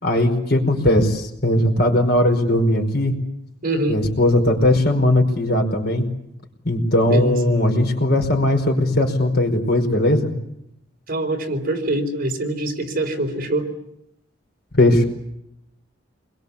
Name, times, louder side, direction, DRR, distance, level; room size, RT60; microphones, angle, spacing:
voice 1, 0.0-3.2 3.9-6.0 6.6-10.3 14.7-15.1, left 1 dB, 55° left, 4 dB, 5.1 m, -18 dB
voice 2, 3.6-4.0 7.1-7.5 11.1-13.7, right 1 dB, 50° right, 4 dB, 4.2 m, -24 dB
28.5 x 22.5 x 8.5 m, 0.82 s
head